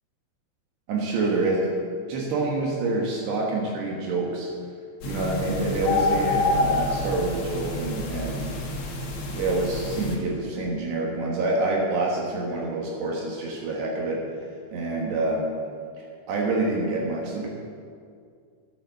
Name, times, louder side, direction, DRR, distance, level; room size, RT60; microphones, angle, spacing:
voice 1, 0.9-1.6 2.1-4.5 5.0-8.5 9.3-14.3 14.7-15.5 16.3-17.5, right 2 dB, 70° right, -2 dB, 3.4 m, -27 dB
sound 1, 5.0-10.2, left 2 dB, 75° left, 1.4 m, -27 dB
12.0 x 8.9 x 6.7 m, 2.2 s
omnidirectional pair, 5.3 m